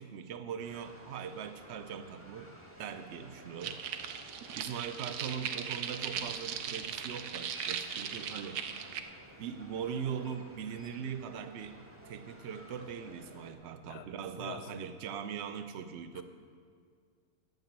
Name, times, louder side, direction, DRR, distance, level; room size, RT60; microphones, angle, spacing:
voice 1, 0.0-2.5 2.8-3.8 4.5-8.6 9.4-11.8 12.0-16.2, right 7 dB, 60° right, 10 dB, 0.8 m, -40 dB
sound 1, 0.6-13.6, equal, 10° right, 1.2 m, -54 dB
sound 2, 3.6-9.0, right 8 dB, 80° right, 1.2 m, -38 dB
voice 2, 14.4-14.7 16.1-16.2, left 8 dB, 50° left, 8 dB, 0.7 m, -45 dB
9.2 x 9.1 x 7.3 m, 2.1 s
omnidirectional pair, 1.6 m